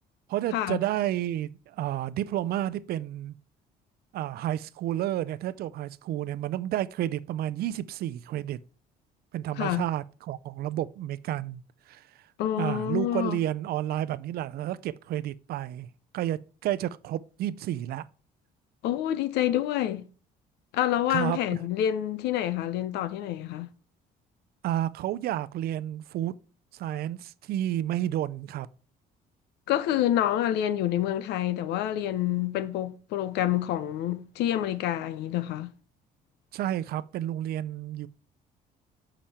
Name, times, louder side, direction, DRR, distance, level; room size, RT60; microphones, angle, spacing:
voice 1, 0.3-3.3 4.1-8.6 9.3-11.6 11.9-12.0 12.6-15.9 16.1-18.1 21.1-21.6 24.6-26.4 26.7-28.7 36.5-38.1, right 12 dB, 65° right, 0.5 m, -31 dB
voice 2, 9.6-9.9 12.4-13.4 18.8-20.0 20.7-23.7 29.7-35.7, left 12 dB, 85° left, 0.7 m, -27 dB
7.4 x 5.0 x 4.2 m
cardioid pair, 110°, 17 cm